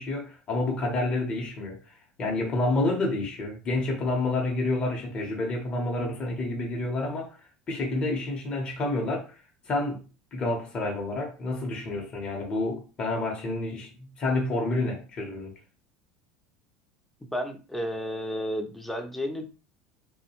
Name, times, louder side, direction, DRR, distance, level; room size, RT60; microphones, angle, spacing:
voice 1, 0.0-1.8 2.2-7.4 7.7-9.3 9.7-10.0 10.3-15.5, left 2 dB, 35° left, 0.8 m, -29 dB
voice 2, 17.3-19.4, equal, 5° left, 0.5 m, -32 dB
2.3 x 2.2 x 2.8 m
supercardioid pair, 110°, 3 cm